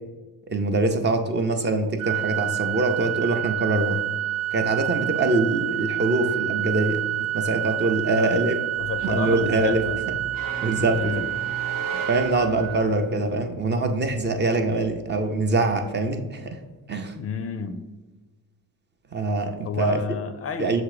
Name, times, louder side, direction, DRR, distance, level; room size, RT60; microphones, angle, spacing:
voice 1, 0.5-4.0 4.5-8.6 9.0-9.9 10.6-11.3 12.1-16.6 16.9-17.1 19.1-20.2 20.6-20.8, right 2 dB, 30° right, 6 dB, 0.5 m, -24 dB
Organ, 2.0-13.0, right 13 dB, 90° right, 0.5 m, -28 dB
voice 2, 8.1-8.4 8.8-10.0 10.9-11.3 17.1-17.8 19.6-20.8, left 7 dB, 40° left, 10 dB, 0.4 m, -31 dB
sound 1, 8.8-16.4, right 3 dB, 10° right, 0.8 m, -44 dB
sound 2, 10.3-13.0, right 3 dB, 65° right, 1.0 m, -38 dB
6.5 x 3.6 x 4.8 m, 1.2 s
cardioid pair, 140°, 36 cm